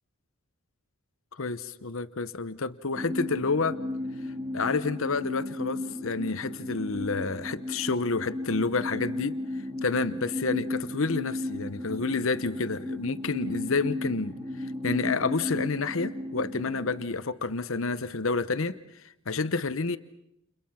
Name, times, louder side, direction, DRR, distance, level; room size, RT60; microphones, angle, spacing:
voice 1, 1.3-3.8 4.5-9.4 9.8-18.8 19.3-20.0, left 4 dB, 70° left, 13 dB, 0.9 m, -29 dB
sound 1, 2.9-17.0, left 1 dB, 15° right, 2.1 m, -35 dB
30.0 x 29.5 x 5.8 m, 0.81 s
head